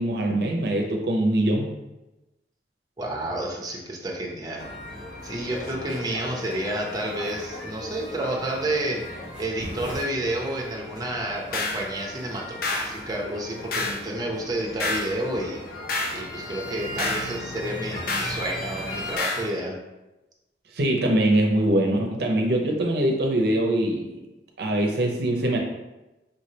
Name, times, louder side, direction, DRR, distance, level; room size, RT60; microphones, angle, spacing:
voice 1, 0.0-1.7 20.7-24.2 24.6-25.6, right 1 dB, 65° right, 1 dB, 0.7 m, -23 dB
voice 2, 3.0-4.7 5.2-15.6 16.1-19.8, right 1 dB, 20° right, -2 dB, 0.7 m, -30 dB
sound 1, 4.6-19.2, left 1 dB, 70° left, 1.6 m, -38 dB
sound 2, 11.5-11.8 12.6-12.9 13.7-14.0 14.8-15.1 15.9-16.2 17.0-17.3 18.1-18.4 19.2-19.5, left 3 dB, 55° left, 0.7 m, -28 dB
5.6 x 3.2 x 2.8 m, 1.0 s
head